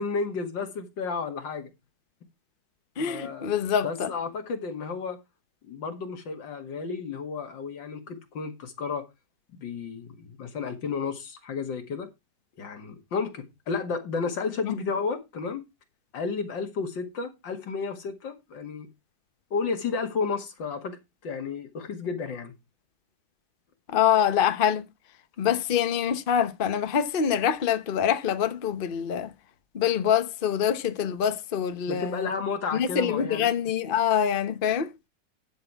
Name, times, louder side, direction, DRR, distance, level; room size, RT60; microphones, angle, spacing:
voice 1, 0.0-1.7 3.0-3.5 3.8-5.2 5.6-9.1 9.5-12.1 12.6-15.6 16.1-18.9 19.5-22.5 31.9-33.5, left 5 dB, 85° left, 2.5 m, -32 dB
voice 2, 3.0-4.1 14.7-14.8 23.9-24.9 25.4-29.3 29.7-32.3 32.7-34.9, left 8 dB, 40° left, 0.8 m, -25 dB
11.5 x 6.4 x 4.6 m
omnidirectional pair, 2.0 m